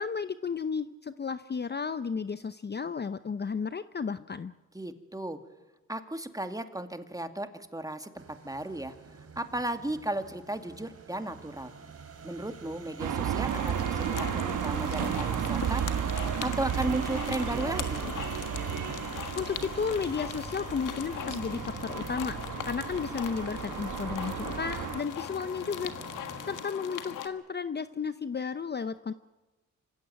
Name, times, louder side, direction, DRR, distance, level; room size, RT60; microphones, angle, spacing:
voice 1, 0.0-4.5 19.1-22.4 22.7-25.9 26.5-29.1, left 5 dB, 35° left, 13 dB, 0.7 m, -33 dB
voice 2, 4.7-5.4 5.9-8.9 9.4-11.7 12.2-15.8 16.4-18.0, right 1 dB, 10° right, 8 dB, 2.2 m, -35 dB
sound 1, 8.2-26.6, right 5 dB, 55° right, 3.0 m, -46 dB
sound 2, 13.0-25.0, right 9 dB, 80° right, 1.1 m, -33 dB
sound 3, 13.5-27.3, left 9 dB, 85° left, 1.6 m, -40 dB
26.0 x 15.5 x 9.2 m, 1.1 s
cardioid pair, 65°, 31 cm